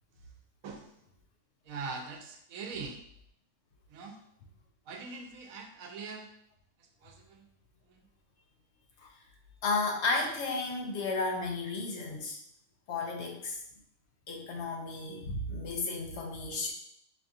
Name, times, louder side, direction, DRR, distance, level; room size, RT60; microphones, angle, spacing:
voice 1, 1.7-3.0 3.9-4.2 4.9-6.3 7.0-7.4, right 4 dB, 90° right, 4 dB, 1.1 m, -42 dB
voice 2, 9.6-12.4 12.9-13.6 14.3-16.7, left 3 dB, 65° left, 1 dB, 0.8 m, -33 dB
5.1 x 2.4 x 2.7 m, 0.70 s
omnidirectional pair, 1.4 m